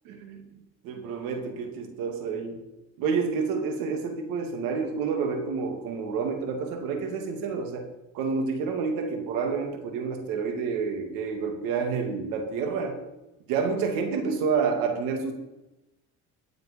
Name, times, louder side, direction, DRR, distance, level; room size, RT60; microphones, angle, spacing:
voice 1, 0.8-2.6 3.0-7.8 8.1-13.0 13.5-15.3, right 5 dB, 80° right, 4 dB, 2.6 m, -29 dB
13.5 x 8.1 x 5.4 m, 0.96 s
supercardioid pair, 90°, 34 cm